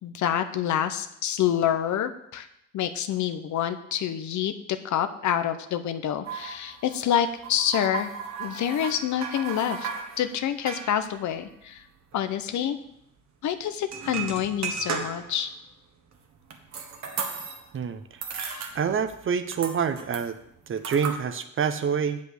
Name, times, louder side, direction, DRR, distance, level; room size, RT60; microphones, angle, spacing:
voice 1, 0.0-2.5 2.7-4.5 4.8-8.1 8.4-9.9 10.2-11.8 12.1-12.8 13.4-15.5, left 10 dB, 70° left, 9 dB, 0.8 m, -27 dB
sound 1, 6.3-12.3 12.5-12.6 12.9-13.1 13.8-15.5 16.0-17.8 18.1-19.2 19.5-21.2, right 6 dB, 65° right, 1.5 m, -36 dB
voice 2, 18.7-20.4 20.7-22.2, right 7 dB, 45° right, 11 dB, 0.8 m, -27 dB
7.9 x 5.3 x 6.6 m, 0.76 s
cardioid pair, 90°, 30 cm